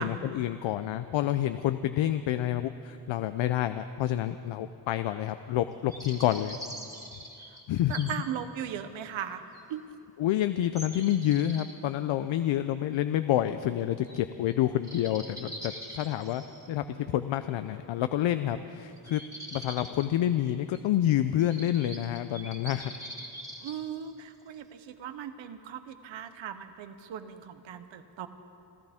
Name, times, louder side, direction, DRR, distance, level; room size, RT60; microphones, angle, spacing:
voice 1, 0.0-6.6 7.7-8.1 10.2-16.4 16.7-19.2 19.5-22.9, left 12 dB, 85° left, 10 dB, 0.6 m, -28 dB
sound 1, 5.9-8.2 8.6-8.7 9.5-9.6 10.7-11.7 14.0-14.2 14.5-14.6 14.8-16.7 19.0-20.0 20.7-20.8 21.4-23.8, equal, 5° right, 1.7 m, -43 dB
voice 2, 7.9-9.4 9.7-9.8 23.6-28.3, right 9 dB, 80° right, 10 dB, 1.0 m, -38 dB
26.5 x 14.5 x 3.6 m, 2.6 s
wide cardioid pair, 125°, 45 cm